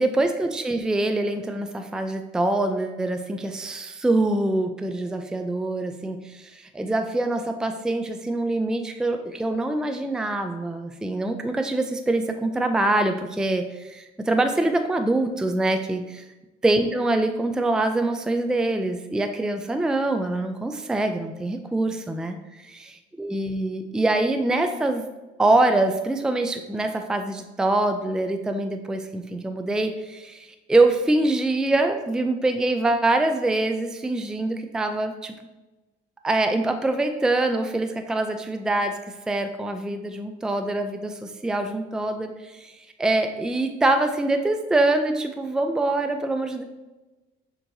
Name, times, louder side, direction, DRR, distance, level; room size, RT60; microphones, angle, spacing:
voice 1, 0.0-16.2 16.6-22.8 23.2-25.0 25.4-35.3 36.2-39.0 39.3-46.6, right 2 dB, 5° right, 6 dB, 0.4 m, -24 dB
6.3 x 3.0 x 2.7 m, 1.1 s
cardioid pair, 90°, 20 cm